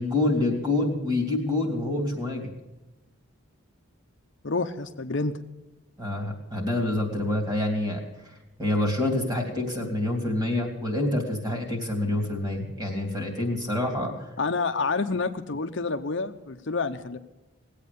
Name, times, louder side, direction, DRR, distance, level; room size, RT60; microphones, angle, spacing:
voice 1, 0.0-2.5 6.0-8.0 8.6-14.1, left 2 dB, 20° right, 3 dB, 3.1 m, -27 dB
voice 2, 4.4-5.3 14.4-17.2, left 4 dB, 55° left, 7 dB, 0.7 m, -28 dB
19.5 x 8.5 x 6.9 m, 1.0 s
head